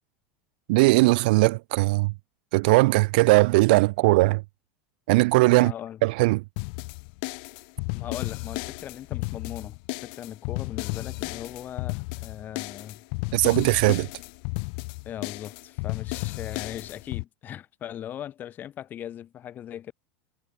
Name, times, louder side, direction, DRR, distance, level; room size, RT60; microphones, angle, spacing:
voice 1, 0.7-2.1 2.5-4.4 5.1-5.7 6.0-6.4 13.3-14.1, right 23 dB, 70° right, 1.6 m, -19 dB
voice 2, 5.5-6.0 7.9-13.0 15.1-19.9, left 10 dB, 35° left, 7.0 m, -39 dB
sound 1, 6.6-17.2, left 35 dB, 65° left, 1.0 m, -33 dB
supercardioid pair, 115°, 5 cm